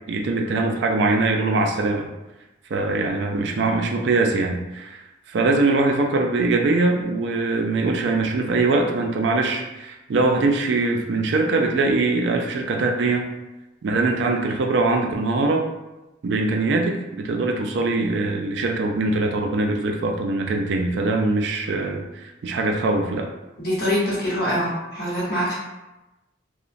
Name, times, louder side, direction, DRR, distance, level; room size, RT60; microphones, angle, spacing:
voice 1, 0.0-2.1 2.7-5.0 5.3-13.2 13.8-15.6 16.2-23.3, right 3 dB, 60° right, 2 dB, 0.3 m, -22 dB
voice 2, 23.6-25.5, equal, 50° left, -6 dB, 0.9 m, -24 dB
2.9 x 2.1 x 2.5 m, 1.0 s
head